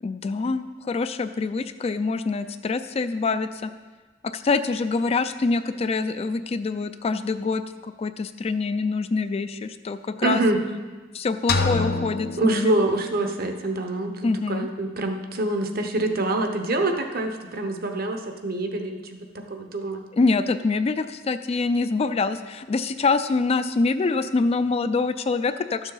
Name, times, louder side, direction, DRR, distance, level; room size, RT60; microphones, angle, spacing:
voice 1, 0.0-3.7 4.2-10.4 11.1-12.7 14.2-14.7 20.1-25.9, left 4 dB, 30° left, 11 dB, 0.3 m, -25 dB
voice 2, 10.2-10.6 12.4-19.0 19.3-20.0, right 2 dB, 50° right, 5 dB, 0.9 m, -25 dB
sound 1, 11.5-13.4, left 3 dB, 55° left, 0.8 m, -27 dB
12.0 x 7.2 x 3.9 m, 1.3 s
head